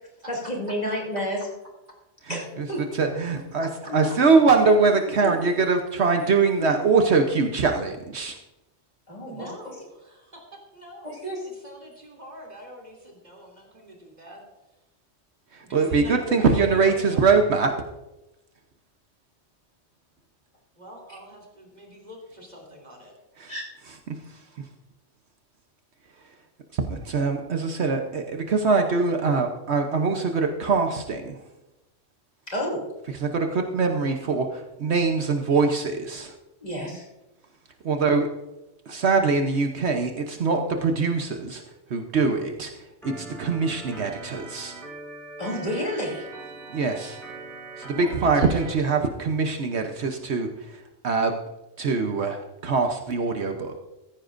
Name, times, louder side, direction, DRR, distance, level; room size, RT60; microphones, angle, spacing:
voice 1, 0.3-1.4 2.3-2.8 3.9-4.1 5.2-5.3 6.6-6.7 9.1-9.5 11.0-11.4 23.5-23.7 32.5-32.8 36.6-37.0 45.4-46.3 47.9-48.1, equal, 35° left, -3 dB, 3.0 m, -30 dB
voice 2, 2.3-2.7 3.0-3.7 3.9-8.4 15.7-17.7 23.4-23.5 24.1-24.2 26.7-31.4 33.2-36.3 37.8-38.3 38.9-41.6 41.9-42.7 43.0-44.7 46.7-47.2 47.8-50.5 51.0-51.3 51.8-53.8, right 4 dB, 65° right, 4 dB, 1.2 m, -23 dB
voice 3, 3.6-4.4 9.3-10.4 10.7-11.1 11.4-14.4 15.6-17.4 20.7-23.1 48.2-49.0, equal, 35° right, -1 dB, 3.0 m, -43 dB
Organ, 43.0-48.7, right 3 dB, ahead, 5.0 m, -41 dB
15.0 x 14.5 x 2.6 m, 0.99 s
omnidirectional pair, 1.2 m